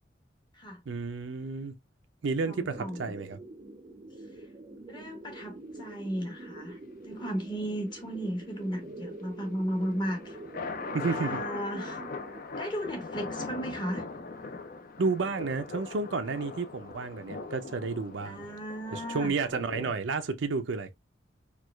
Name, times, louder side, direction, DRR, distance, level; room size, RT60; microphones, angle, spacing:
voice 1, 0.9-1.7 2.2-3.4 10.9-11.4 15.0-18.5 18.9-20.9, right 4 dB, 75° right, 0.5 m, -31 dB
voice 2, 2.4-3.0 4.9-6.8 7.0-10.4 11.1-12.0 12.6-14.1 18.2-19.3, equal, 25° left, 0.9 m, -35 dB
sound 1, 2.4-12.4, right 2 dB, 30° right, 0.5 m, -45 dB
sound 2, 9.8-20.0, left 3 dB, 50° left, 0.6 m, -40 dB
4.5 x 2.4 x 2.2 m
head